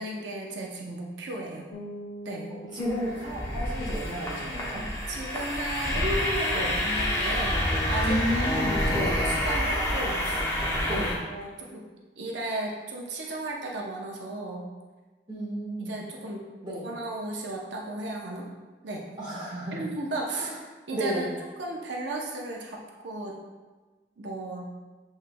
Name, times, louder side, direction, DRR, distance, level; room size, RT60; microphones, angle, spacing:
voice 1, 0.0-1.7 2.2-2.5 5.1-7.6 7.9-10.4 10.9-11.8 12.2-14.7 15.8-16.4 16.8-18.5 18.8-19.1 19.7-20.5 20.9-21.3 21.6-23.4 24.2-24.7, right 2 dB, 90° right, -1 dB, 0.6 m, -35 dB
sound 1, 1.7-7.3, right 1 dB, 60° left, 0.7 m, -46 dB
voice 2, 2.6-4.9 6.5-6.7 8.0-9.3 10.9-11.2 15.3-16.0 16.6-16.9 19.2-19.8 20.3-20.6 20.9-21.3, equal, 25° right, -7 dB, 1.4 m, -32 dB
sound 2, 2.8-11.2, left 1 dB, 15° left, 0.7 m, -28 dB
7.5 x 3.1 x 2.2 m, 1.3 s
head